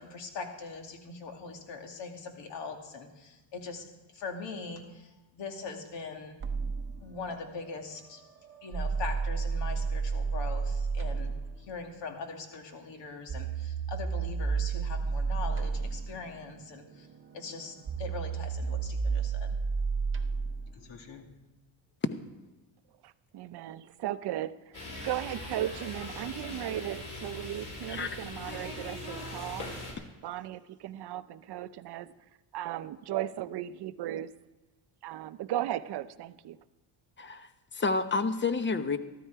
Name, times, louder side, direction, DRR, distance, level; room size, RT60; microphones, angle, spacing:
voice 1, 0.0-3.9 4.1-6.4 7.0-8.2 8.6-17.1 17.3-19.6 20.7-21.3, left 4 dB, 65° left, 3 dB, 2.4 m, -41 dB
sound 1, 6.4-11.6 13.3-20.7, right 5 dB, 25° right, 0.8 m, -32 dB
voice 2, 23.0-29.7 30.2-32.1 32.5-34.3 35.0-36.6, right 13 dB, 60° right, 14 dB, 0.7 m, -36 dB
sound 2, 24.7-29.9, left 2 dB, 40° left, 4.6 m, -41 dB
voice 3, 37.2-39.0, left 4 dB, 25° left, 11 dB, 0.9 m, -30 dB
13.5 x 13.0 x 4.7 m, 1.1 s
cardioid pair, 105°, 46 cm